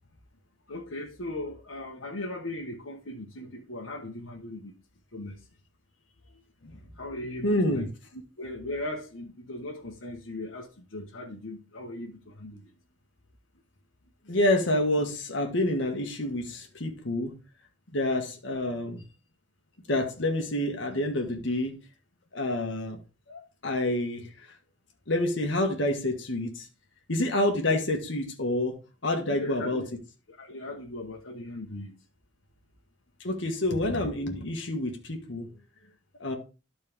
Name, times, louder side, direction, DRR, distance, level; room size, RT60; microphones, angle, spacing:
voice 1, 0.7-4.7 5.1-5.4 7.0-7.9 8.1-12.7 29.3-29.9 30.4-32.0, left 1 dB, 85° left, 1.3 m, -38 dB
voice 2, 7.4-7.9 14.3-17.4 17.9-19.0 19.9-21.8 22.3-23.0 23.3-24.3 25.1-26.6 27.1-28.8 29.0-29.8 33.2-35.5 36.2-36.4, left 1 dB, 65° left, 1.5 m, -28 dB
13.0 x 4.3 x 3.5 m
head